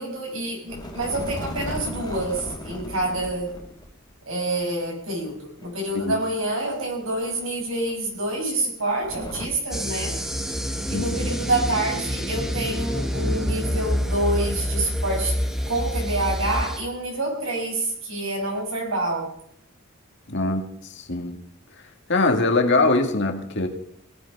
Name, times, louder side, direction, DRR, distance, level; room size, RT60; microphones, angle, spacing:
voice 1, 0.0-3.6 4.3-10.1 10.9-15.4 15.7-19.3, right 2 dB, 70° right, 0 dB, 6.6 m, -27 dB
sound 1, 0.7-3.9 4.2-4.3 5.6-7.6 7.8-7.9 9.0-9.5, left 1 dB, 20° left, 2.9 m, -36 dB
sound 2, 9.7-16.8, equal, ahead, 1.1 m, -27 dB
voice 2, 20.3-21.4 22.1-23.7, left 2 dB, 55° left, 3 dB, 2.1 m, -22 dB
18.0 x 12.5 x 5.5 m, 0.69 s
head